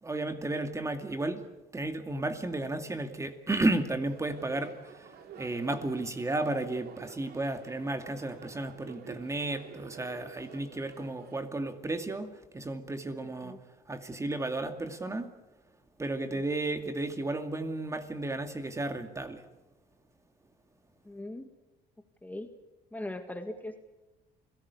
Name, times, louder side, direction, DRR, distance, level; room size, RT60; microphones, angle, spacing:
voice 1, 0.0-1.4 1.7-5.1 5.4-13.6 13.9-15.3 16.0-19.4, right 2 dB, 15° right, 7 dB, 2.3 m, -33 dB
sound 1, 4.0-11.4, right 7 dB, 65° right, 3.2 m, -50 dB
voice 2, 21.1-21.5 22.2-22.5 22.9-23.8, left 1 dB, 10° left, 7 dB, 1.9 m, -39 dB
29.0 x 17.5 x 8.3 m, 1.0 s
cardioid pair, 110°, 17 cm